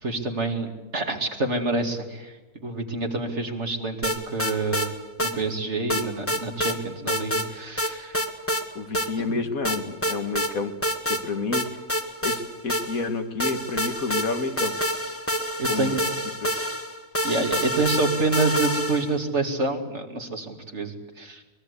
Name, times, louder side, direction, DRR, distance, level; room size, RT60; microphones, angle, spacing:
voice 1, 0.0-2.3 2.6-4.9 5.2-8.2 9.2-9.3 15.6-16.0 17.2-21.4, right 3 dB, 45° right, 4 dB, 2.8 m, -27 dB
sound 1, 4.0-4.9 5.2-5.3 5.9-6.8 7.1-7.5 7.8-8.6 8.9-9.1 9.6-10.5 10.8-11.2 11.5-13.1 13.4-19.2, equal, 10° left, 1.8 m, -27 dB
voice 2, 8.8-10.7 11.1-11.6 12.2-14.8 15.7-16.0 16.4-16.6, left 4 dB, 65° left, 7 dB, 2.1 m, -29 dB
24.0 x 21.0 x 8.3 m, 1.2 s
omnidirectional pair, 1.6 m